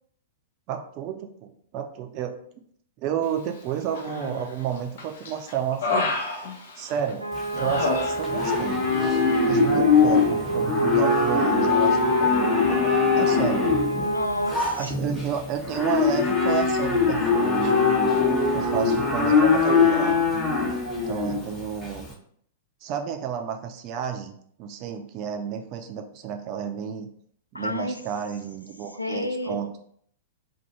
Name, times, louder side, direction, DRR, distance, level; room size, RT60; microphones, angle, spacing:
voice 1, 0.7-2.4 3.0-6.0 6.8-7.2 7.5-8.8 9.4-13.7 14.8-17.7 18.5-20.2 20.9-22.1 22.8-27.1 27.5-29.7, right 8 dB, 40° right, 0.5 m, -31 dB
Human voice, 3.9-4.6 5.0-7.1 7.5-8.6 8.9-9.2, left 3 dB, 60° left, 0.6 m, -29 dB
sound 1, 7.2-14.6, right 3 dB, 90° right, 0.5 m, -29 dB
Livestock farm animals working animals, 7.3-22.1, left 4 dB, 15° left, 1.0 m, -22 dB
voice 2, 13.7-14.9 27.5-28.0 29.0-29.6, left 1 dB, 90° left, 0.3 m, -31 dB
2.7 x 2.5 x 4.3 m
figure-of-eight pair, 100°, 0 cm